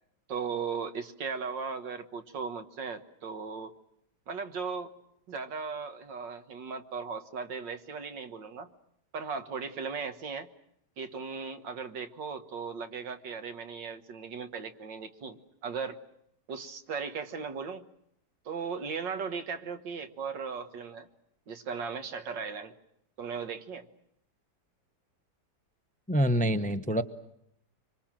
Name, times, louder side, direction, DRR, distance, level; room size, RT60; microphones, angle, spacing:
voice 1, 0.3-3.7 4.3-4.9 5.3-8.7 9.1-10.5 11.0-16.0 16.5-17.9 18.5-21.1 21.5-22.7 23.2-23.9, right 5 dB, 90° right, 9 dB, 2.1 m, -37 dB
voice 2, 26.1-27.0, equal, 5° left, 10 dB, 0.6 m, -26 dB
25.5 x 25.5 x 7.5 m, 0.75 s
omnidirectional pair, 1.9 m